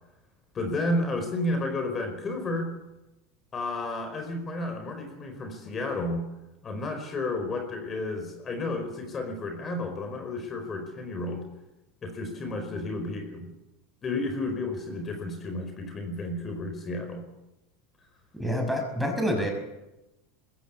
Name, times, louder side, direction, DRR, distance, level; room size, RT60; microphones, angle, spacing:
voice 1, 0.5-2.7 3.5-6.3 6.6-11.4 12.0-13.5 14.0-17.2, left 2 dB, 25° left, 5 dB, 4.7 m, -32 dB
voice 2, 18.4-19.5, equal, ahead, 3 dB, 5.8 m, -27 dB
22.0 x 15.5 x 8.5 m, 0.96 s
supercardioid pair, 125°, 0 cm